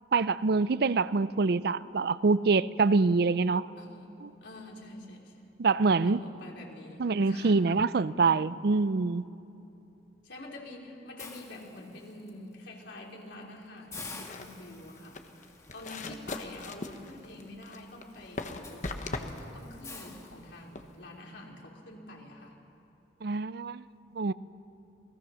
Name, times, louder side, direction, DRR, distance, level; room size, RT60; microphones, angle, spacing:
voice 1, 0.1-3.7 5.6-6.2 7.0-9.2 23.2-23.8 24.2-24.3, right 4 dB, 60° right, 16 dB, 0.5 m, -25 dB
voice 2, 3.8-4.1 4.4-5.4 6.0-7.7 10.2-15.2 15.7-22.6, left 1 dB, 85° left, -1 dB, 3.6 m, -46 dB
Hiss, 11.2-12.3 12.8-13.0 13.3-13.4 13.9-21.0, left 4 dB, 20° left, 1.7 m, -49 dB
sound 1, 13.9-20.9, left 2 dB, 45° left, 1.2 m, -40 dB
28.5 x 18.0 x 6.4 m, 2.9 s
head